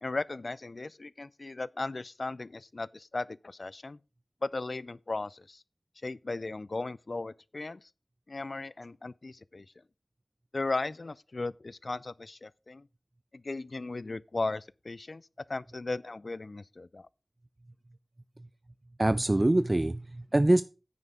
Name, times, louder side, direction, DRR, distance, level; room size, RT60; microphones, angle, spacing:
voice 1, 0.0-4.0 4.4-5.6 6.0-7.9 8.3-9.7 10.5-12.9 13.3-15.2 15.5-17.1, left 3 dB, 60° left, 0.3 m, -36 dB
voice 2, 19.0-20.6, right 1 dB, 35° right, 0.4 m, -24 dB
9.5 x 5.5 x 4.9 m
cardioid pair, 40°, 0 cm